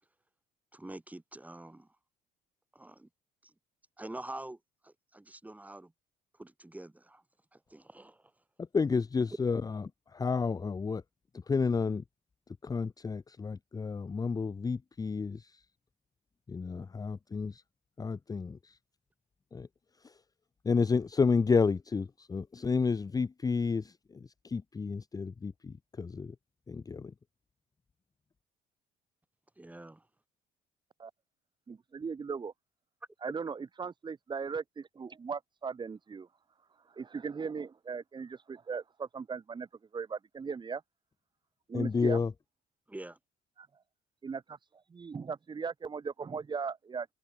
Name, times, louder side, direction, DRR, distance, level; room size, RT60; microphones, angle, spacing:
voice 1, 0.7-1.9 2.7-3.1 3.4-3.5 4.0-4.6 4.8-5.9 6.4-7.2 7.5-8.2 29.6-30.0 42.9-43.2, right 1 dB, 10° right, 7.0 m, -46 dB
voice 2, 8.7-11.0 11.5-12.0 12.6-15.6 16.5-17.6 18.0-18.8 19.5-19.7 20.0-20.1 20.6-26.3 26.7-27.1 41.7-42.3, left 5 dB, 20° left, 0.8 m, -31 dB
voice 3, 31.7-32.5 33.2-36.3 36.9-39.7 39.9-40.8 41.7-42.2 43.6-43.7 44.2-44.6 44.9-47.1, right 5 dB, 25° right, 1.5 m, -38 dB
cardioid pair, 110°, 17 cm